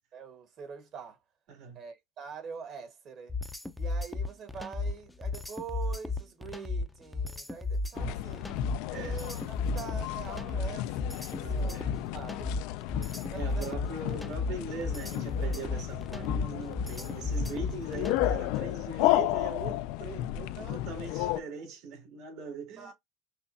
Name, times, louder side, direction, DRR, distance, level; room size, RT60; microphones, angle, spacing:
voice 1, 0.1-1.2 1.7-3.3 3.8-8.4 8.9-11.9 12.1-12.5 13.3-13.8 20.6-20.8 21.2-21.3 22.8-22.9, right 6 dB, 45° right, 1.5 m, -44 dB
voice 2, 1.5-1.8 8.0-8.3 8.9-9.3 11.3-12.2 13.3-22.9, right 4 dB, 70° right, 2.6 m, -41 dB
sound 1, 3.3-18.5, left 3 dB, 5° left, 0.5 m, -34 dB
sound 2, 8.0-21.4, left 16 dB, 75° left, 0.3 m, -33 dB
5.9 x 2.3 x 2.7 m
cardioid pair, 130°, 0 cm